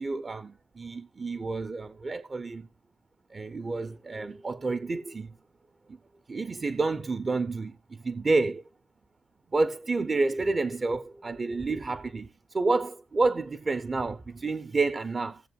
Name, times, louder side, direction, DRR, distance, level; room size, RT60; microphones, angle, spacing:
voice 1, 0.0-2.7 3.3-5.3 5.9-6.0 6.3-8.6 9.5-15.4, right 3 dB, 40° right, 0.6 m, -29 dB
17.5 x 7.4 x 2.4 m
cardioid pair, 55°, 0 cm